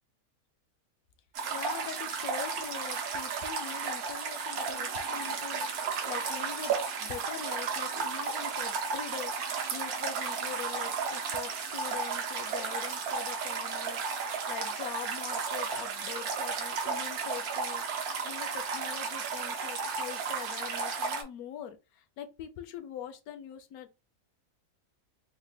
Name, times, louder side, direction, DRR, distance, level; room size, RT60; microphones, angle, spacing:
sound 1, 1.3-21.2, right 5 dB, 75° right, 1.2 m, -33 dB
voice 1, 1.5-24.0, left 9 dB, 75° left, 1.0 m, -43 dB
3.7 x 2.1 x 3.2 m
omnidirectional pair, 1.6 m